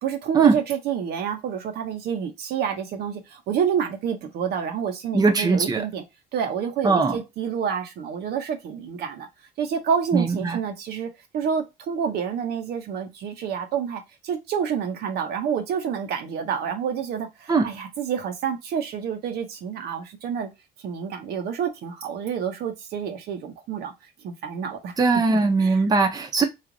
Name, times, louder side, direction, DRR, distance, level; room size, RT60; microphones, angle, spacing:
voice 1, 0.0-6.0 6.3-9.3 9.6-20.5 20.8-23.9 24.2-24.9 25.3-25.8, right 7 dB, 75° right, 0.9 m, -28 dB
voice 2, 5.1-5.9 6.8-7.2 10.1-10.6 17.5-17.7 25.0-26.4, right 4 dB, 20° right, 0.7 m, -20 dB
3.2 x 2.4 x 3.8 m
cardioid pair, 110°, 17 cm